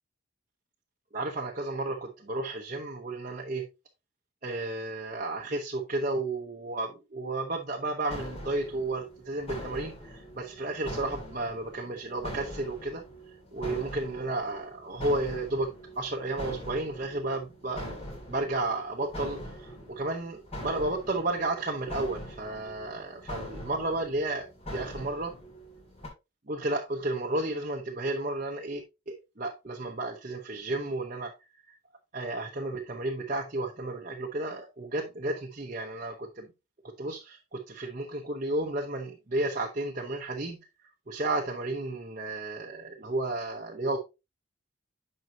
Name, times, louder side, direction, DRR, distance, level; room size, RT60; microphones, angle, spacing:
voice 1, 1.1-3.7 4.4-13.0 13.5-17.9 18.3-24.5 24.7-25.3 26.5-31.3 31.7-31.8 32.1-36.5 37.0-40.6 41.1-44.0, right 2 dB, 40° right, 0.9 m, -32 dB
sound 1, 8.1-26.1, equal, 30° left, 2.3 m, -43 dB
9.4 x 5.6 x 2.8 m
head